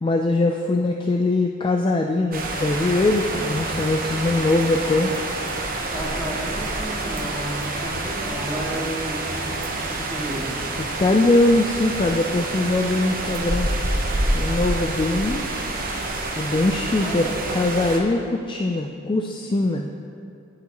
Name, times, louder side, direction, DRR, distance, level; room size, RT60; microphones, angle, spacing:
voice 1, 0.0-5.1 11.0-13.7 14.3-15.5 16.4-19.9, left 2 dB, 25° left, 3 dB, 0.3 m, -21 dB
sound 1, 2.3-18.0, right 2 dB, 45° right, 0.9 m, -27 dB
voice 2, 5.9-10.5 17.0-17.6, equal, 5° left, -7 dB, 2.0 m, -32 dB
9.8 x 9.1 x 3.0 m, 2.4 s
head